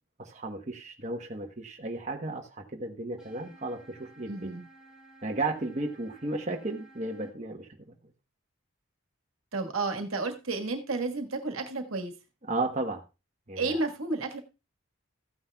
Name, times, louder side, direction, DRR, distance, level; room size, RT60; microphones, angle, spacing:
voice 1, 0.2-4.5 5.2-7.9 12.5-13.0 13.5-13.8, right 2 dB, 35° right, 2 dB, 1.1 m, -34 dB
sound 1, 3.2-7.3, right 2 dB, 5° right, 2.3 m, -55 dB
voice 2, 4.3-4.7 9.5-12.1 13.6-14.4, right 3 dB, 80° right, 4 dB, 1.5 m, -31 dB
14.5 x 9.5 x 2.3 m, 0.28 s
head